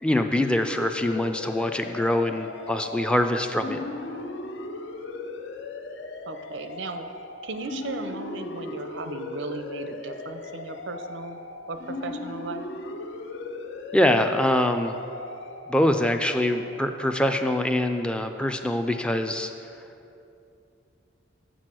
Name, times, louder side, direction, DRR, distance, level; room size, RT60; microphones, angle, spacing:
voice 1, 0.0-3.8 13.9-15.0 15.7-19.5, left 1 dB, 5° left, 6 dB, 0.3 m, -24 dB
sound 1, 0.8-17.2, left 3 dB, 75° left, 0.6 m, -38 dB
voice 2, 6.3-7.1 7.4-11.4 11.7-12.6, right 3 dB, 85° right, 8 dB, 0.6 m, -36 dB
6.7 x 6.3 x 7.6 m, 2.7 s
head